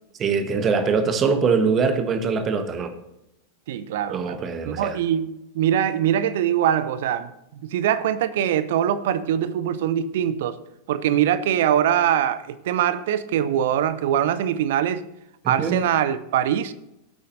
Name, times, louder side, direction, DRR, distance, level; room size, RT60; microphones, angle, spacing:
voice 1, 0.2-2.9 4.1-5.0 15.4-15.8, right 5 dB, 25° right, 1.2 m, -23 dB
voice 2, 3.7-4.4 4.6-10.6 10.9-15.1 15.5-16.7, right 10 dB, 55° right, 0.7 m, -23 dB
17.0 x 8.5 x 2.7 m
figure-of-eight pair, 90°, 0 cm